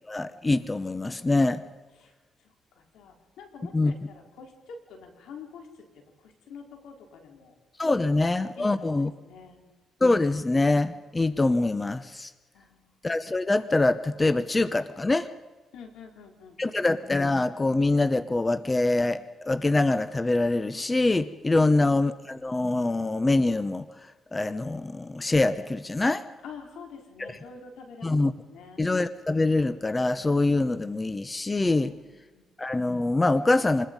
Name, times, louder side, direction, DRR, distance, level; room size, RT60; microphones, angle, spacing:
voice 1, 0.1-1.6 3.7-3.9 7.8-9.1 10.0-12.3 13.0-15.3 16.6-23.8 24.3-26.2 27.2-27.4 28.0-28.3 28.8-31.9 32.6-33.9, left 2 dB, 20° left, 13 dB, 0.9 m, -24 dB
voice 2, 2.8-5.7 5.9-7.5 8.0-9.6 12.5-12.9 15.7-16.8 26.4-28.8 31.8-32.5, left 5 dB, 80° left, 3 dB, 4.3 m, -47 dB
27.0 x 20.5 x 5.4 m, 1.3 s
cardioid pair, 90°, 0 cm